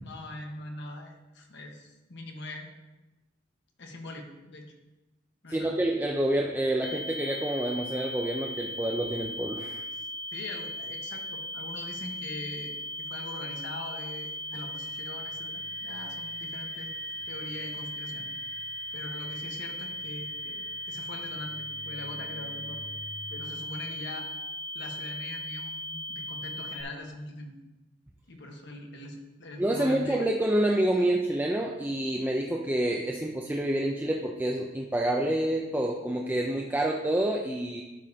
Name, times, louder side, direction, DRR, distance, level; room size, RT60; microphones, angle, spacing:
voice 1, 0.0-2.7 3.8-4.7 5.4-5.8 10.3-16.9 17.3-18.3 18.9-22.9 23.3-24.3 24.7-27.5 28.3-30.2 31.0-31.1, left 2 dB, 65° left, 2 dB, 1.3 m, -42 dB
voice 2, 5.5-9.9 29.6-37.8, right 1 dB, 10° right, 0 dB, 0.5 m, -28 dB
sound 1, 6.8-26.8, left 1 dB, 25° left, 1.1 m, -38 dB
sound 2, 14.5-23.7, right 2 dB, 80° right, 3.0 m, -51 dB
11.0 x 7.2 x 2.8 m, 1.1 s
head